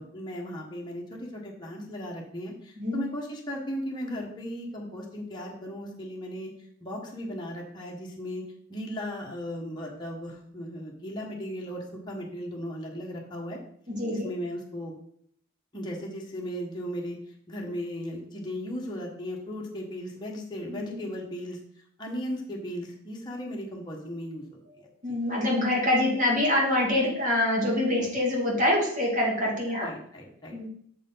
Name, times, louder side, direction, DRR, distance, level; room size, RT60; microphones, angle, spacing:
voice 1, 0.0-6.5 6.8-8.4 8.7-13.6 14.1-14.9 15.7-17.2 17.5-21.6 22.0-24.4 29.6-30.5, equal, 20° left, -2 dB, 1.4 m, -36 dB
voice 2, 13.9-14.3 20.7-20.9 25.0-29.9 30.5-30.7, left 1 dB, 40° right, -3 dB, 2.3 m, -25 dB
6.7 x 5.0 x 5.6 m, 0.66 s
head